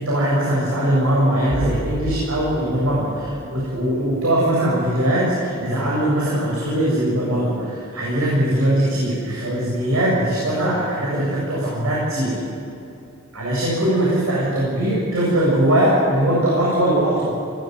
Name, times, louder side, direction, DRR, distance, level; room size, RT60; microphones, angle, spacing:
voice 1, 0.0-12.4 13.3-17.3, right 1 dB, 70° right, -6 dB, 7.9 m, -20 dB
sound 1, 1.5-4.4, right 1 dB, 55° right, 6.1 m, -31 dB
20.5 x 19.0 x 9.7 m, 2.7 s
head